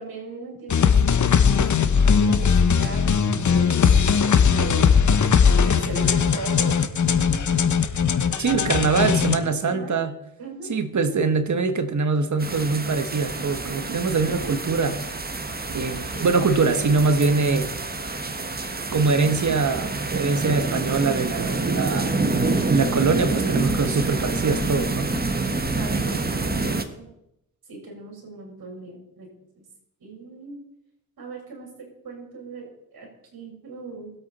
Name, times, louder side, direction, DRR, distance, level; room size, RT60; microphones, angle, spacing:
voice 1, 0.0-1.7 2.0-3.2 3.4-4.9 5.6-6.7 7.0-7.7 8.2-9.1 9.4-10.0 10.4-10.7 16.1-16.3 25.5-27.1 27.7-29.3 29.5-29.6 30.0-30.6 31.2-31.7 32.0-34.1, right 3 dB, 75° right, -1 dB, 5.1 m, -38 dB
sound 1, 0.7-9.4, left 6 dB, 55° left, 1.1 m, -19 dB
voice 2, 8.4-10.1 10.7-15.0 15.7-17.7 18.9-22.1 22.7-25.1, right 4 dB, 55° right, 9 dB, 1.5 m, -23 dB
sound 2, 12.4-26.8, right 3 dB, 25° right, 1.4 m, -27 dB
sound 3, 13.2-26.6, equal, 5° right, 3.3 m, -41 dB
21.0 x 8.2 x 4.3 m, 0.81 s
cardioid pair, 75°, 36 cm